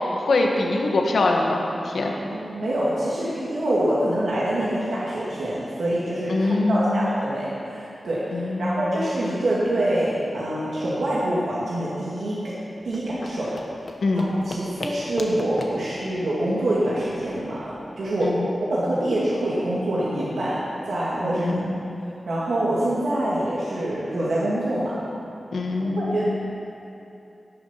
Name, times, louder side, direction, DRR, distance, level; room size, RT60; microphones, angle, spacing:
voice 1, 0.2-2.1 6.3-7.0 8.3-9.0 14.0-14.3 18.2-18.5 21.4-21.8 25.5-26.3, left 2 dB, 85° left, 1 dB, 1.5 m, -23 dB
voice 2, 2.3-12.6 12.8-13.5 14.1-21.6 22.3-25.0 25.8-26.3, right 1 dB, 85° right, -8 dB, 2.2 m, -25 dB
sound 1, 12.8-18.0, left 2 dB, 60° left, 1.1 m, -38 dB
17.0 x 7.2 x 5.8 m, 2.7 s
wide cardioid pair, 115°, 0 cm